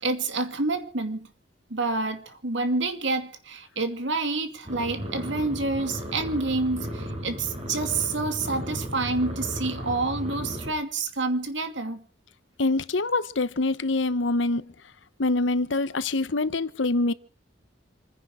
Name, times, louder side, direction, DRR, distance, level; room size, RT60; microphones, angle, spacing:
voice 1, 0.0-1.3 1.7-12.0, right 3 dB, 75° right, 2.5 m, -28 dB
sound 1, 4.7-10.7, equal, 35° right, 5.3 m, -35 dB
voice 2, 12.6-14.7 15.2-17.1, left 2 dB, 80° left, 1.0 m, -25 dB
27.5 x 10.5 x 5.0 m
head